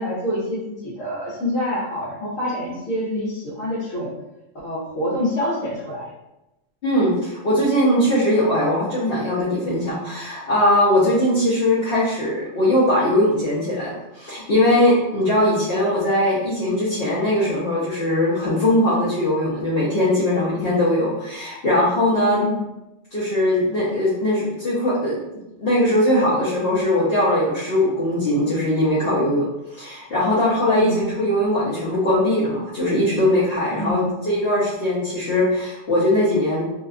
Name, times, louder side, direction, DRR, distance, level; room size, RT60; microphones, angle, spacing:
voice 1, 0.0-4.1 4.6-6.1 15.4-15.6 22.3-22.6 30.7-31.0 33.8-34.1, left 1 dB, 80° left, -7 dB, 1.0 m, -26 dB
voice 2, 6.8-22.4 23.1-25.2 25.6-29.5 29.7-36.7, left 1 dB, 55° left, -9 dB, 0.8 m, -20 dB
2.6 x 2.1 x 2.4 m, 0.94 s
omnidirectional pair, 1.3 m